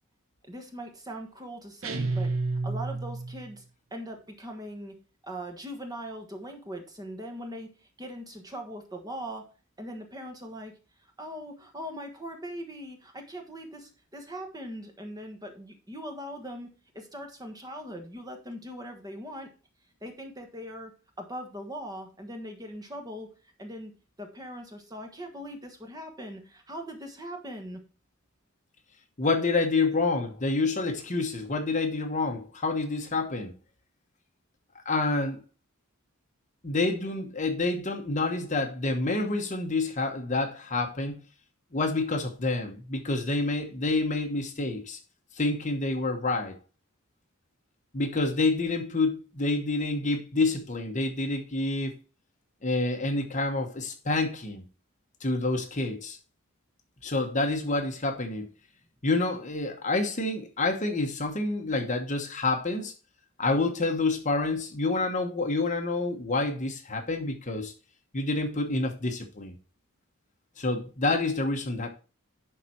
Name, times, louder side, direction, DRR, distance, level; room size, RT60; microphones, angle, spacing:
voice 1, 0.5-2.3 2.6-3.6 3.9-4.9 5.2-9.5 9.8-10.7 11.0-19.5 20.0-20.9 21.2-23.3 23.6-23.9 24.2-27.8, equal, 20° right, 1.3 m, -40 dB
sound 1, 1.8-3.5, right 3 dB, 70° right, 1.1 m, -30 dB
voice 2, 29.2-33.5 34.8-35.4 36.6-41.2 41.7-45.0 45.4-46.6 47.9-51.9 52.6-54.6 55.2-56.2 57.0-58.5 59.0-62.9 63.4-67.7 68.1-69.5 70.6-71.9, left 3 dB, 35° left, 1.1 m, -28 dB
11.0 x 4.1 x 4.4 m
head